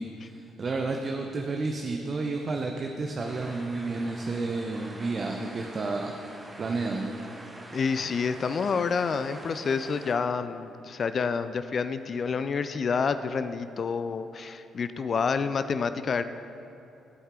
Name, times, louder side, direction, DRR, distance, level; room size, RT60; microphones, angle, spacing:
voice 1, 0.0-6.2 6.6-7.1, right 3 dB, 45° right, 3 dB, 0.6 m, -31 dB
sound 1, 3.2-10.1, right 1 dB, 20° right, 1.5 m, -45 dB
voice 2, 7.7-16.2, left 5 dB, 50° left, 11 dB, 0.3 m, -28 dB
15.0 x 5.4 x 3.7 m, 2.9 s
hypercardioid pair, 50°, 0 cm